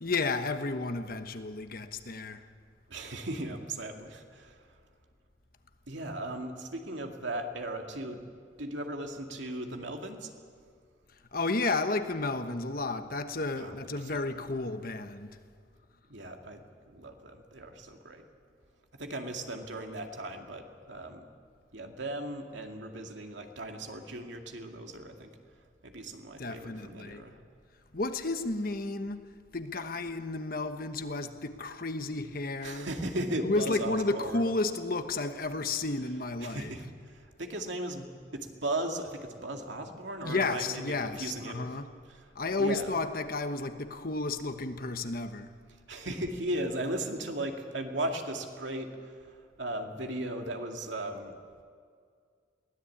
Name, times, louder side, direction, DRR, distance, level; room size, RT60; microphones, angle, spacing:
voice 1, 0.0-2.5 11.3-15.4 26.4-27.3 27.9-29.2 29.5-32.9 33.4-36.9 40.2-42.0 42.3-45.5, left 3 dB, 50° left, 1.2 m, -32 dB
voice 2, 2.9-4.6 5.9-8.2 8.6-10.3 13.5-13.8 14.1-14.3 16.1-18.2 19.0-21.3 21.7-25.3 25.8-27.4 32.6-34.4 36.4-38.1 38.3-40.8 41.2-41.7 42.6-42.9 45.9-51.3, right 1 dB, 80° right, 2.3 m, -37 dB
22.5 x 17.5 x 8.6 m
head